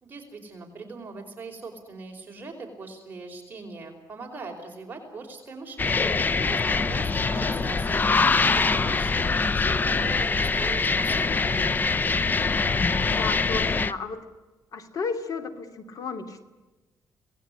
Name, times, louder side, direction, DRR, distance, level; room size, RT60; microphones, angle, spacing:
voice 1, 0.0-9.2 9.5-11.8, right 3 dB, 25° right, 1 dB, 4.8 m, -40 dB
sound 1, 5.8-13.9, left 4 dB, 25° left, 0.8 m, -24 dB
voice 2, 13.1-14.2 14.7-16.4, left 5 dB, 55° left, 8 dB, 2.7 m, -33 dB
26.0 x 19.0 x 9.8 m, 1.1 s
cardioid pair, 125°, 7 cm